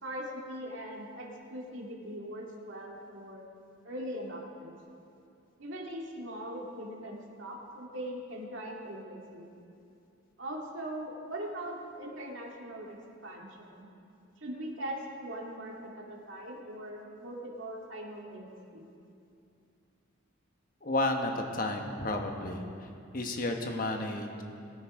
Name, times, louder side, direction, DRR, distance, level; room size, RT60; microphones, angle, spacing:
voice 1, 0.0-3.5 3.8-4.7 5.6-9.5 10.4-13.9 14.4-18.9, right 1 dB, 70° right, -2 dB, 2.2 m, -41 dB
voice 2, 20.8-22.6 23.1-24.4, left 2 dB, 40° left, 3 dB, 1.2 m, -32 dB
21.5 x 9.5 x 3.7 m, 2.6 s
head